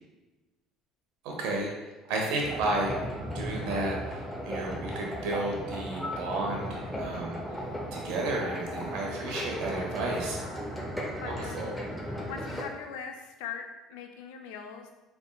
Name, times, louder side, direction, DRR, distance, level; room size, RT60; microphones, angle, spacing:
voice 1, 1.2-1.7 2.1-2.9 3.3-4.2 4.5-7.3 7.9-10.4 11.2-11.7, right 2 dB, 80° right, -1 dB, 0.8 m, -32 dB
sound 1, 2.4-12.6, equal, 5° left, 0.8 m, -36 dB
voice 2, 11.2-11.7 12.2-14.9, left 6 dB, 85° left, 4 dB, 0.5 m, -41 dB
3.8 x 3.5 x 2.3 m, 1.1 s
supercardioid pair, 90°, 0 cm